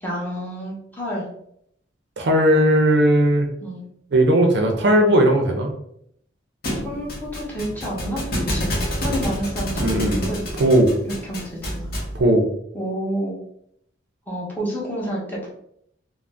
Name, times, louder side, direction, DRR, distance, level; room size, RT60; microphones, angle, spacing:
voice 1, 0.0-1.3 3.6-3.8 6.8-10.0 10.3-10.4 11.0-11.9 12.7-13.4 14.3-15.5, equal, 10° left, -5 dB, 0.8 m, -29 dB
voice 2, 2.2-3.5 4.1-5.7 9.8-10.2 10.6-10.9 12.1-12.4, right 1 dB, 65° right, 3 dB, 0.5 m, -17 dB
Thump thud, 6.6-12.2, equal, 55° left, 0.8 m, -27 dB
2.5 x 2.0 x 3.3 m, 0.71 s
head